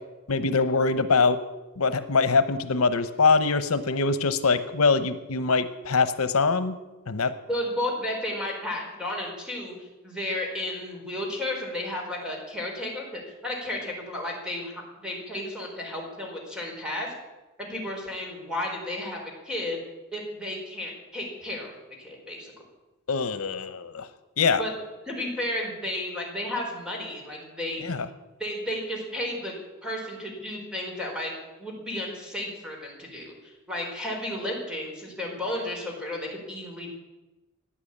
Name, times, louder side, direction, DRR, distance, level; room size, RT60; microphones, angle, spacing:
voice 1, 0.3-1.4 1.8-6.8 7.1-7.3 23.1-24.1 24.4-24.6 27.8-28.1, left 4 dB, 85° left, 12 dB, 0.9 m, -23 dB
voice 2, 7.5-17.1 17.6-19.2 19.4-19.8 20.1-21.7 22.0-22.5 24.6-24.7 25.1-27.8 28.4-29.6 29.8-31.3 31.6-36.9, left 1 dB, 5° right, -1 dB, 4.5 m, -33 dB
15.5 x 9.9 x 8.7 m, 1.1 s
head